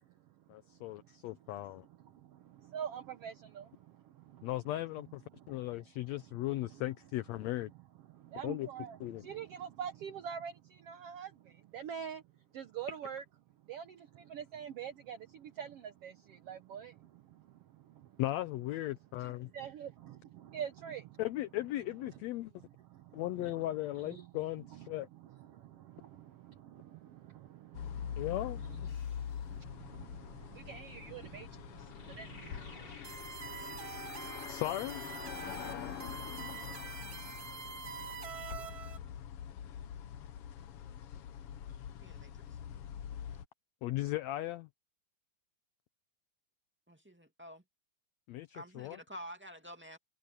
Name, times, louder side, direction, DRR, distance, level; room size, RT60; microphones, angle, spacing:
voice 1, 0.5-1.9 4.4-5.2 5.5-7.7 8.4-8.7 9.0-9.3 18.2-19.5 21.2-22.5 23.1-25.1 28.2-28.6 34.5-35.0 43.8-44.7 48.3-49.0, left 16 dB, 85° left, 1.5 m, -37 dB
voice 2, 2.0-4.5 5.3-5.6 8.1-12.2 12.5-13.2 13.7-18.1 19.2-21.2 22.9-23.5 24.1-24.3 25.5-28.3 28.7-28.8 29.4-33.0, right 8 dB, 75° right, 1.4 m, -46 dB
sound 1, 27.7-43.5, left 9 dB, 65° left, 1.5 m, -44 dB
sound 2, 28.9-29.6 31.6-34.6, left 3 dB, 35° left, 5.5 m, -58 dB
sound 3, 33.0-39.0, right 6 dB, 55° right, 1.0 m, -45 dB
voice 3, 42.0-42.4 46.9-47.6 48.5-50.0, equal, 5° right, 1.5 m, -49 dB
omnidirectional pair, 3.8 m